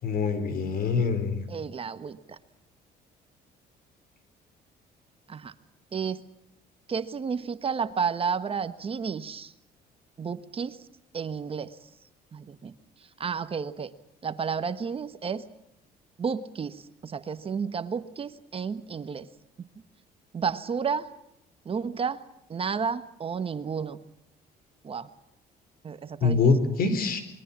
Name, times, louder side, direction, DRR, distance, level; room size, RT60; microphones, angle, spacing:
voice 1, 0.0-1.4 26.2-27.2, left 4 dB, 60° left, 11 dB, 4.5 m, -24 dB
voice 2, 1.5-2.4 5.3-5.5 5.9-6.2 6.9-9.5 10.2-10.8 11.1-11.7 12.3-12.7 13.2-13.9 14.2-15.4 16.2-19.3 20.3-21.1 21.6-22.2 22.5-24.0 24.8-25.1 25.8-26.4, right 6 dB, 35° right, 11 dB, 1.3 m, -31 dB
27.0 x 21.5 x 7.4 m, 0.81 s
cardioid pair, 110°, 17 cm